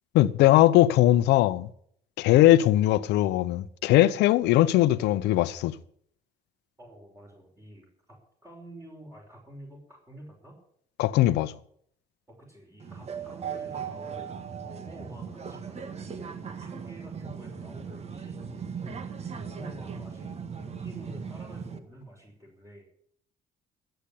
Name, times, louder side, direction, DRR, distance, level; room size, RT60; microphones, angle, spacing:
voice 1, 0.1-1.7 2.2-5.8 11.0-11.5, left 15 dB, 85° left, 0.9 m, -20 dB
voice 2, 6.8-8.2 8.4-10.6 12.3-18.4 19.4-22.9, right 1 dB, 15° right, 5.6 m, -48 dB
sound 1, 12.8-21.8, right 6 dB, 40° right, 1.7 m, -38 dB
13.5 x 9.2 x 8.5 m
cardioid pair, 110°, 17 cm